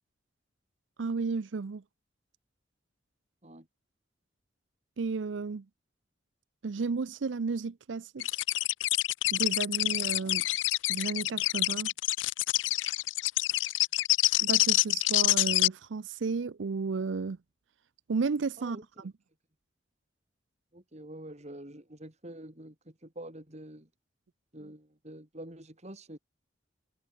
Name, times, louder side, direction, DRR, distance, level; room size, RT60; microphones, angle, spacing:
voice 1, 1.0-1.8 5.0-5.7 6.6-8.3 9.3-10.4 10.9-11.9 14.4-17.4 18.1-18.8, right 4 dB, 85° right, 0.5 m, -32 dB
sound 1, 8.2-15.7, left 17 dB, 90° left, 0.4 m, -27 dB
voice 2, 18.6-19.1 20.7-23.9 24.5-26.2, right 1 dB, 40° right, 4.1 m, -46 dB
head